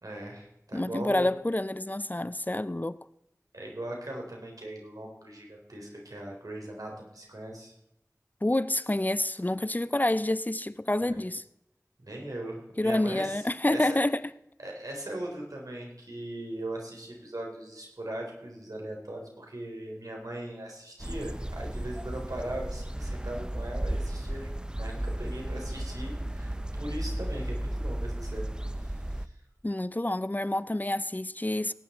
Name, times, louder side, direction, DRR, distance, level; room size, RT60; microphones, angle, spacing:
voice 1, 0.0-1.3 3.5-7.7 11.0-11.2 12.0-14.0 14.6-28.5 28.8-29.3, right 1 dB, 85° right, 3.9 m, -39 dB
voice 2, 0.7-3.0 8.4-11.4 12.8-14.2 29.6-31.7, left 1 dB, 30° left, 0.5 m, -28 dB
sound 1, 21.0-29.3, right 1 dB, 15° right, 0.6 m, -34 dB
17.5 x 10.0 x 4.4 m
wide cardioid pair, 40°, 6 cm